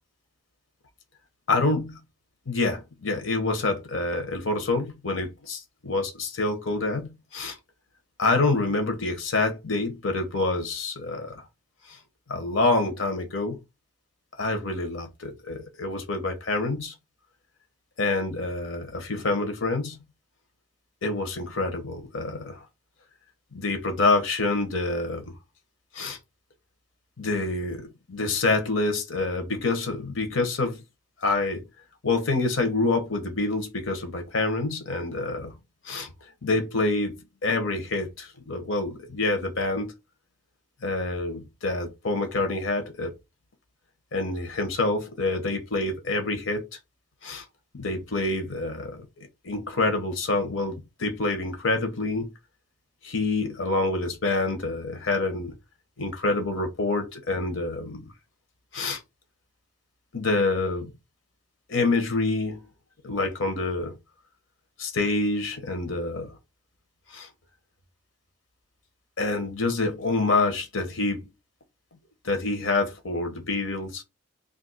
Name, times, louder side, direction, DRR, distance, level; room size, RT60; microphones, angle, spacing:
voice 1, 1.5-2.0 2.5-7.6 8.2-11.4 11.9-12.0 12.3-13.6 14.4-16.9 18.0-20.0 21.0-22.6 23.5-25.4 25.9-26.2 27.2-30.8 31.2-31.6 32.0-35.5 35.8-36.1 36.4-37.2 37.4-39.9 40.8-43.1 44.1-46.8 47.2-47.4 47.7-49.0 49.4-52.3 53.0-55.5 56.0-58.0 58.7-59.0 60.1-60.9 61.7-62.6 63.0-63.9 64.8-66.3 67.1-67.3 69.2-71.3 72.2-74.0, left 3 dB, 80° left, 0.9 m, -27 dB
2.7 x 2.5 x 3.9 m
head